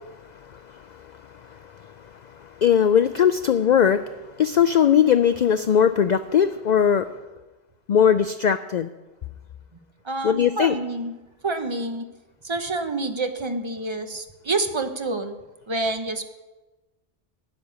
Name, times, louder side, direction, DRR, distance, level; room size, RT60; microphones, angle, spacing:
voice 1, 0.5-1.0 1.5-1.6 2.4-4.0 4.4-7.1 7.9-8.9 10.2-10.8, left 8 dB, 60° left, 11 dB, 0.5 m, -19 dB
voice 2, 10.0-11.1 11.4-12.1 12.4-15.3 15.7-16.2, right 2 dB, 25° right, 7 dB, 0.9 m, -27 dB
11.5 x 7.3 x 9.3 m, 1.1 s
omnidirectional pair, 1.1 m